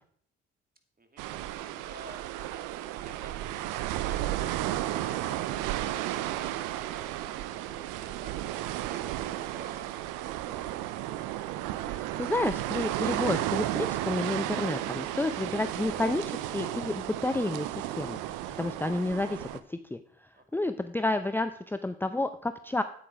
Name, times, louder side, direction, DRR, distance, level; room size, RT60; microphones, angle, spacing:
voice 1, 1.0-5.2 5.6-8.4 8.8-11.2 20.3-20.6, right 2 dB, 30° right, 6 dB, 2.2 m, -52 dB
sound 1, 1.2-19.6, right 14 dB, 80° right, 0.6 m, -33 dB
voice 2, 11.9-18.2 18.6-20.0 20.5-22.8, left 2 dB, 5° left, 10 dB, 0.6 m, -30 dB
8.9 x 8.5 x 4.9 m, 0.62 s
hypercardioid pair, 45°, 31 cm